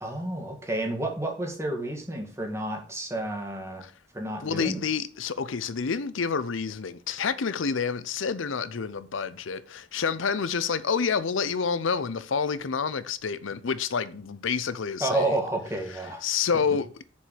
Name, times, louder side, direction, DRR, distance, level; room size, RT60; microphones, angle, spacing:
voice 1, 0.0-3.9 4.1-4.8 15.0-16.2, right 2 dB, 15° right, 1.9 m, -30 dB
voice 2, 4.4-15.4 16.2-16.9, left 6 dB, 85° left, 0.6 m, -28 dB
7.1 x 4.7 x 6.7 m
head